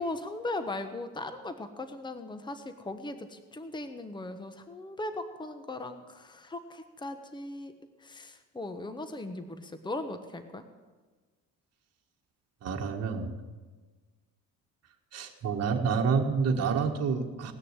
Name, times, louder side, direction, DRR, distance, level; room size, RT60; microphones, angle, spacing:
voice 1, 0.0-7.7 8.0-10.6, left 2 dB, 15° left, 9 dB, 1.2 m, -38 dB
voice 2, 12.6-13.3 15.1-17.5, right 5 dB, 45° right, 1 dB, 1.6 m, -28 dB
18.0 x 6.6 x 9.0 m, 1.3 s
cardioid pair, 90°, 34 cm